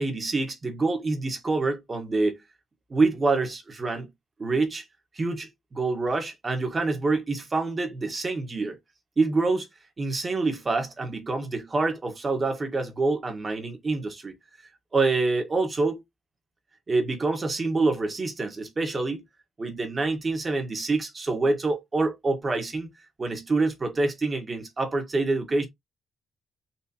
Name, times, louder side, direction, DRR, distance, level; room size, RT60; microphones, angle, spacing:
voice 1, 0.0-2.4 2.9-4.1 4.4-4.8 5.1-8.8 9.2-9.7 10.0-14.3 14.9-16.0 16.9-19.2 19.6-22.9 23.2-25.7, right 3 dB, 30° right, 1.4 m, -26 dB
4.2 x 3.0 x 2.8 m
cardioid pair, 90°, 0 cm